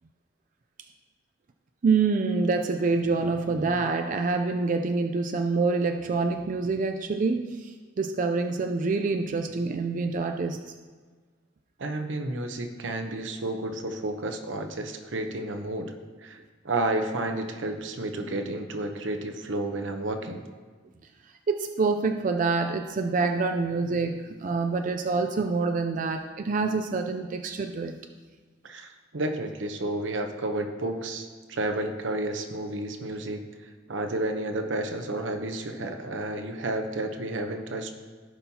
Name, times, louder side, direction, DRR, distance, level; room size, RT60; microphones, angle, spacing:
voice 1, 1.8-10.6 21.5-28.0, right 4 dB, 45° right, 5 dB, 0.4 m, -26 dB
voice 2, 11.8-15.9 16.2-20.4 28.6-37.9, right 2 dB, 80° right, 5 dB, 0.8 m, -31 dB
16.5 x 5.5 x 2.8 m, 1.4 s
head